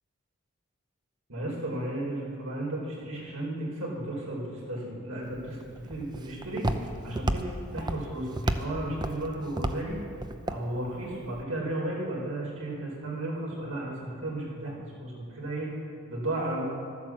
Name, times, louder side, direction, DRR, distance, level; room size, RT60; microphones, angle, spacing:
voice 1, 1.3-6.7 7.0-10.0 10.5-15.7 16.1-16.6, right 1 dB, 80° right, -3 dB, 4.5 m, -34 dB
Walk footsteps, 5.2-11.4, right 1 dB, 20° right, 0.6 m, -34 dB
13.0 x 11.5 x 7.5 m, 2.4 s
head